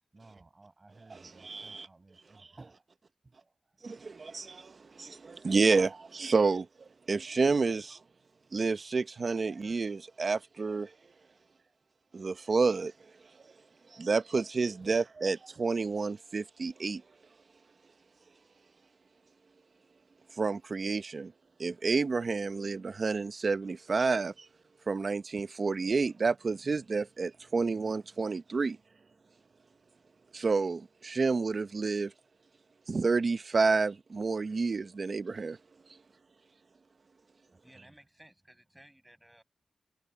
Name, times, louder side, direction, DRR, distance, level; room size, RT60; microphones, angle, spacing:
voice 1, 0.1-2.8 3.2-3.5 5.1-5.2 9.8-9.9 11.6-11.7 12.1-12.3 37.5-37.9, right 3 dB, 30° right, 6.8 m, -57 dB
voice 2, 1.1-1.9 3.8-8.0 8.5-10.9 12.1-12.9 13.9-17.0 20.4-21.3 21.6-24.5 24.9-28.8 30.3-32.1 32.9-35.6, right 4 dB, 50° right, 0.9 m, -29 dB
voice 3, 37.6-39.4, right 1 dB, 10° right, 7.6 m, -58 dB
wide cardioid pair, 120°, 0 cm